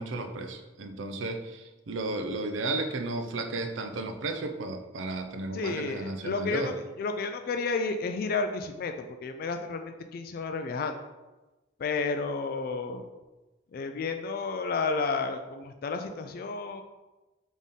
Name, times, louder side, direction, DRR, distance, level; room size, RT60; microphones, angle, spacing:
voice 1, 0.0-6.8, right 2 dB, 85° right, 6 dB, 0.5 m, -34 dB
voice 2, 5.5-11.0 11.8-13.1 13.7-16.8, left 4 dB, 50° left, 6 dB, 0.3 m, -31 dB
4.1 x 3.6 x 3.6 m, 1.1 s
head